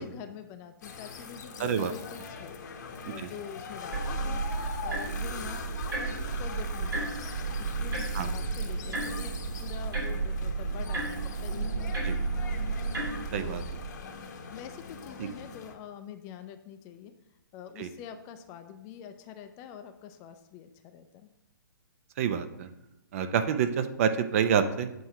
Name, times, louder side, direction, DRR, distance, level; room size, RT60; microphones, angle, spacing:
voice 1, 0.0-2.6 3.1-9.3 9.6-12.6 13.0-13.7 14.5-17.1 17.5-21.3, left 8 dB, 25° left, 8 dB, 0.4 m, -46 dB
sound 1, 0.8-15.7, left 5 dB, 55° left, 0.9 m, -42 dB
voice 2, 1.6-1.9 3.0-3.3 8.1-8.3 12.0-12.2 13.3-13.6 15.2-15.3 17.8-17.9 22.2-22.7 23.1-25.1, right 7 dB, 40° right, 10 dB, 0.5 m, -28 dB
sound 2, 3.9-13.8, right 4 dB, 80° right, 2.1 m, -32 dB
7.6 x 4.6 x 2.8 m, 0.93 s
hypercardioid pair, 135°, 11 cm